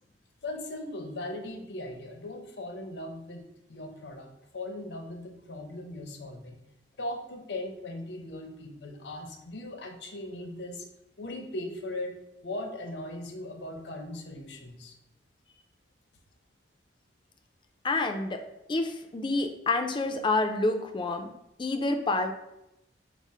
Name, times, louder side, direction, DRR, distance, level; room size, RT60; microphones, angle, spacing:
voice 1, 0.4-6.6 7.0-10.9 11.2-15.0, left 1 dB, 75° left, 4 dB, 0.7 m, -39 dB
voice 2, 17.8-18.4 18.7-21.3 21.6-22.3, left 2 dB, 30° left, 5 dB, 0.4 m, -28 dB
4.9 x 2.0 x 4.2 m, 0.86 s
head